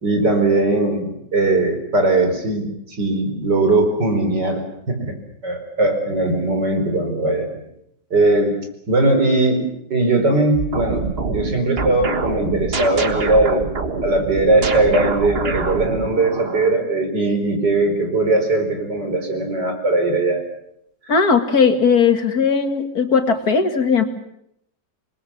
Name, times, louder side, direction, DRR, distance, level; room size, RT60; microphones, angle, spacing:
voice 1, 0.0-2.7 3.0-5.2 5.4-7.5 8.1-8.5 8.9-13.6 14.0-20.4 21.0-21.1, right 2 dB, 75° right, 5 dB, 5.2 m, -19 dB
sound 1, 10.6-16.8, right 4 dB, 35° right, 1.7 m, -26 dB
voice 2, 21.1-24.0, left 5 dB, 60° left, 7 dB, 2.5 m, -17 dB
27.5 x 21.0 x 7.4 m, 0.75 s
omnidirectional pair, 1.9 m